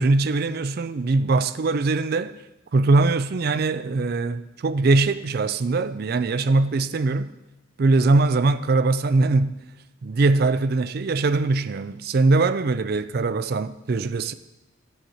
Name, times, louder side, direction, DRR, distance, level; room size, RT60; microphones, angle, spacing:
voice 1, 0.0-2.3 2.7-7.3 7.8-9.6 10.0-14.3, right 3 dB, 45° right, 0.4 m, -21 dB
10.5 x 4.3 x 7.8 m
head